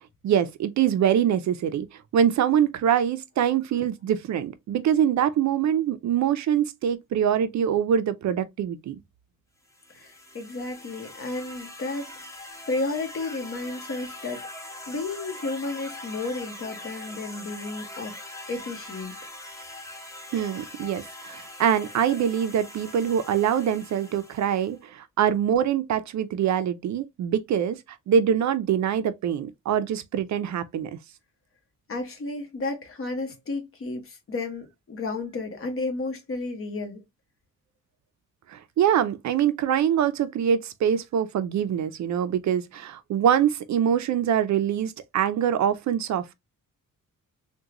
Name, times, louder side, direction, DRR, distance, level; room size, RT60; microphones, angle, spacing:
voice 1, 0.2-1.9 2.1-9.0 20.3-27.8 28.1-30.9 38.5-46.3, right 9 dB, 60° right, 0.4 m, -24 dB
sound 1, 9.7-24.8, left 1 dB, 10° left, 0.7 m, -42 dB
voice 2, 9.9-14.5 14.9-18.2 18.5-19.1 31.9-37.0, left 3 dB, 40° left, 1.0 m, -32 dB
3.6 x 2.2 x 2.8 m
wide cardioid pair, 145°, 32 cm